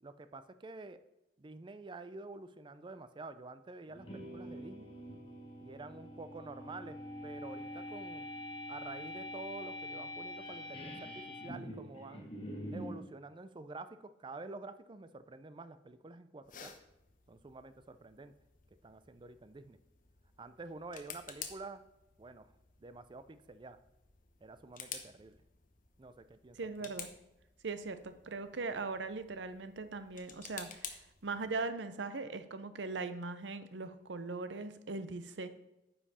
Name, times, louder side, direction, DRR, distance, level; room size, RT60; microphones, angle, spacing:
voice 1, 0.0-1.0 1.4-4.9 5.6-7.0 7.2-8.3 8.7-12.3 12.7-16.7 17.3-18.3 18.8-19.8 20.4-21.8 22.2-22.5 22.8-23.8 24.4-25.4 26.0-26.9, right 3 dB, 25° right, 12 dB, 0.4 m, -48 dB
sound 1, 3.9-13.0, left 1 dB, 30° left, 1.6 m, -45 dB
sound 2, 16.4-31.7, left 7 dB, 50° left, 1.0 m, -52 dB
voice 2, 26.5-27.1 27.6-35.5, right 3 dB, 80° right, 11 dB, 0.7 m, -40 dB
9.6 x 5.6 x 4.2 m, 0.92 s
head